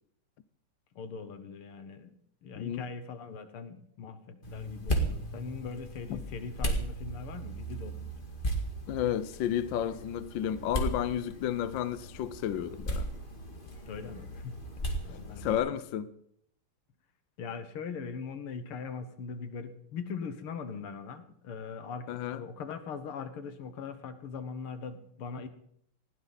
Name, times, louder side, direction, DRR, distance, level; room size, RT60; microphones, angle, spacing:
voice 1, 1.0-2.1 2.4-8.1 13.9-14.6 15.1-15.5 17.4-25.5, left 5 dB, 85° left, 2.2 m, -41 dB
voice 2, 2.6-2.9 6.1-6.2 8.9-13.1 15.4-16.1 22.1-22.4, left 10 dB, 70° left, 1.4 m, -32 dB
sound 1, 4.4-15.6, right 1 dB, 25° left, 2.2 m, -36 dB
20.0 x 16.5 x 4.1 m
omnidirectional pair, 2.3 m